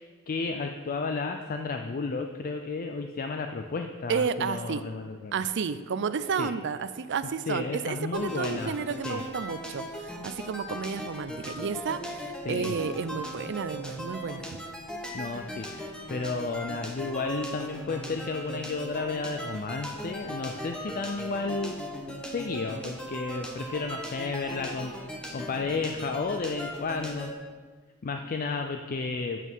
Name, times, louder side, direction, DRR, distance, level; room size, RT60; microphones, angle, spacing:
voice 1, 0.0-5.4 6.4-6.5 7.5-8.8 9.0-9.2 12.4-12.8 15.1-21.8 22.3-27.5 28.0-29.4, left 4 dB, 40° left, 5 dB, 0.5 m, -32 dB
voice 2, 4.1-4.8 5.3-14.5, right 6 dB, 55° right, 13 dB, 0.5 m, -31 dB
sound 1, 8.1-27.3, equal, 5° left, 1.0 m, -38 dB
8.3 x 7.2 x 5.5 m, 1.5 s
head